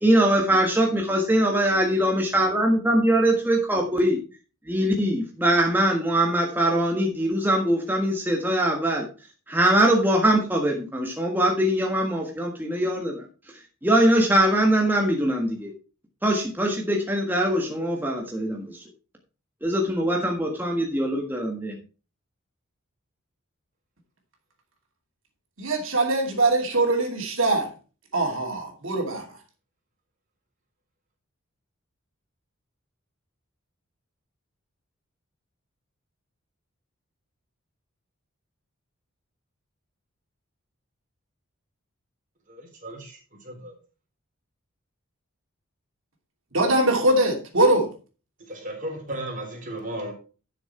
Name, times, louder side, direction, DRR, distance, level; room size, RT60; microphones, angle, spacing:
voice 1, 0.0-4.2 4.6-9.1 9.5-15.7 16.2-18.8 19.6-21.8, right 1 dB, 10° right, 1.5 m, -22 dB
voice 2, 25.6-27.7 28.1-29.2 46.5-47.9, right 2 dB, 65° right, 2.8 m, -22 dB
voice 3, 42.5-43.2 43.4-43.7 48.5-50.1, right 1 dB, 40° right, 3.7 m, -35 dB
11.5 x 6.7 x 4.4 m
head